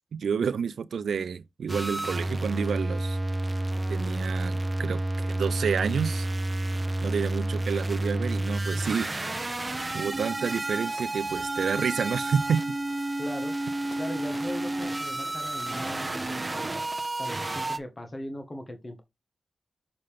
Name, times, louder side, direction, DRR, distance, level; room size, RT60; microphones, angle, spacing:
voice 1, 0.1-3.2 3.9-6.3 7.0-9.1 9.9-12.6, right 6 dB, 85° right, 0.4 m, -29 dB
sound 1, 1.7-17.8, right 2 dB, 25° right, 0.8 m, -30 dB
sound 2, 8.5-13.2, left 2 dB, 45° left, 1.2 m, -53 dB
sound 3, 10.6-11.1 11.3-11.7 12.0-12.4 12.7-13.1 13.6-16.8, left 2 dB, 70° left, 2.3 m, -53 dB
voice 2, 13.2-13.5 14.0-16.7 17.2-19.0, left 1 dB, 30° left, 1.6 m, -39 dB
6.7 x 5.0 x 3.6 m
cardioid pair, 70°, 0 cm